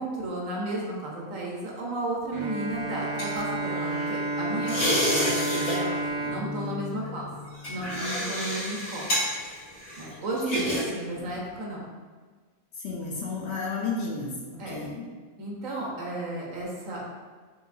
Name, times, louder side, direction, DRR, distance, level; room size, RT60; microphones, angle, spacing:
voice 1, 0.0-6.0 6.3-7.3 7.7-9.2 10.0-11.8 14.6-14.8 15.4-17.0, right 2 dB, 75° right, -3 dB, 1.3 m, -33 dB
Bowed string instrument, 2.3-8.0, right 2 dB, 60° right, 0.3 m, -31 dB
sound 1, 2.7-4.2 4.6-5.8 6.0-6.3 7.0-10.8 11.1-11.4, equal, 80° left, 2.1 m, -30 dB
voice 2, 12.8-15.0, left 4 dB, 60° left, -2 dB, 0.9 m, -32 dB
5.4 x 2.7 x 2.5 m, 1.4 s
omnidirectional pair, 1.4 m